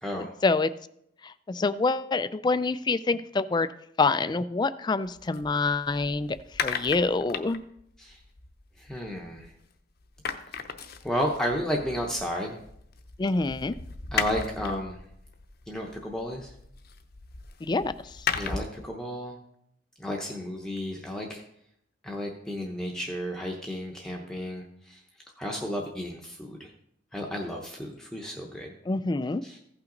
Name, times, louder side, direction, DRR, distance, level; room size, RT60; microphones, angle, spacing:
voice 1, 0.2-0.7 1.2-3.7 4.0-6.4 6.6-7.6 13.2-13.8 17.6-18.3 28.9-29.4, left 3 dB, 20° left, 15 dB, 0.3 m, -26 dB
sound 1, 5.0-9.7 10.0-18.9, left 6 dB, 55° left, 0.7 m, -37 dB
voice 2, 8.8-9.5 11.0-12.6 14.1-15.0 15.7-16.5 18.3-19.4 20.0-21.4 22.0-25.0 25.4-26.7 27.1-28.7 29.4-29.6, equal, 5° left, 0 dB, 0.8 m, -32 dB
15.5 x 5.8 x 3.9 m, 0.75 s
head